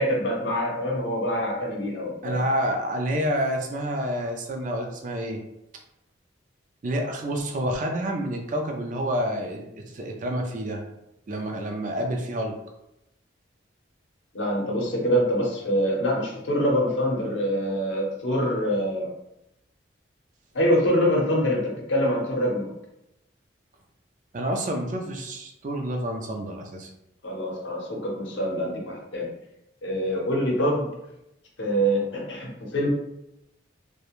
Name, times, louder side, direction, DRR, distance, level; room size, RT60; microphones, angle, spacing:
voice 1, 0.0-2.4 14.3-19.1 20.5-22.7 27.2-29.3 29.8-30.9 31.6-32.9, equal, 70° left, -1 dB, 0.7 m, -25 dB
voice 2, 2.2-5.4 6.8-9.6 9.9-10.8 11.3-12.5 24.3-26.9, equal, 40° right, 3 dB, 0.3 m, -28 dB
2.4 x 2.1 x 2.9 m, 0.86 s
head